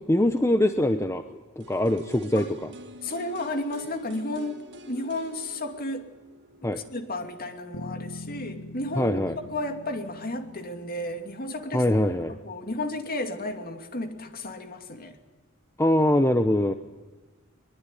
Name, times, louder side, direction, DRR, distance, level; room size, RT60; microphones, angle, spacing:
voice 1, 0.0-2.7 6.6-6.8 9.0-9.4 11.7-12.4 15.8-16.7, left 1 dB, 15° left, 8 dB, 0.8 m, -23 dB
sound 1, 1.6-7.5 7.8-7.9, right 1 dB, 50° right, 1.8 m, -47 dB
voice 2, 3.0-4.6 4.9-6.1 6.6-9.2 9.5-11.9 12.4-15.2, left 1 dB, 40° left, 6 dB, 2.6 m, -33 dB
sound 2, 7.7-12.1, left 2 dB, 70° left, 1.4 m, -43 dB
22.5 x 21.0 x 10.0 m, 1.2 s
head